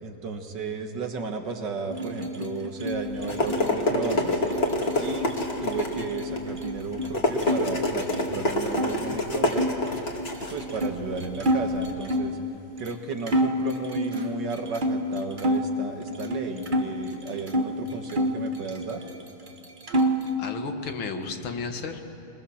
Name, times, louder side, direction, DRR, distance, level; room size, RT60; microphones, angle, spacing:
voice 1, 0.0-4.4 4.9-5.3 5.6-9.7 10.5-12.4 12.8-19.0, right 4 dB, 60° right, 5 dB, 2.1 m, -34 dB
sound 1, 1.9-7.6 7.9-8.9 9.5-12.4 12.9-13.0 13.3-15.7 16.1-17.7 18.1-19.2 19.5-20.3, equal, 30° right, 1.2 m, -29 dB
sound 2, 2.9-11.8, left 1 dB, 30° left, 2.2 m, -28 dB
voice 2, 20.4-22.0, left 4 dB, 75° left, 5 dB, 2.3 m, -34 dB
23.5 x 22.0 x 7.2 m, 2.9 s
omnidirectional pair, 2.2 m